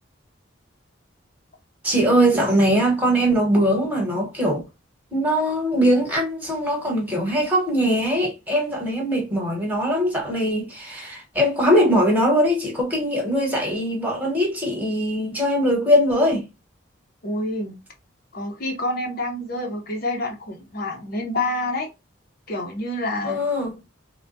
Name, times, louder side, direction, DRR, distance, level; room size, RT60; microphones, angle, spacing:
voice 1, 1.8-4.6 5.1-16.5 23.2-23.7, equal, 10° right, 1.0 m, -21 dB
voice 2, 17.2-17.7 18.3-21.9 22.5-23.4, left 1 dB, 50° left, 0.7 m, -27 dB
3.3 x 2.1 x 2.6 m
head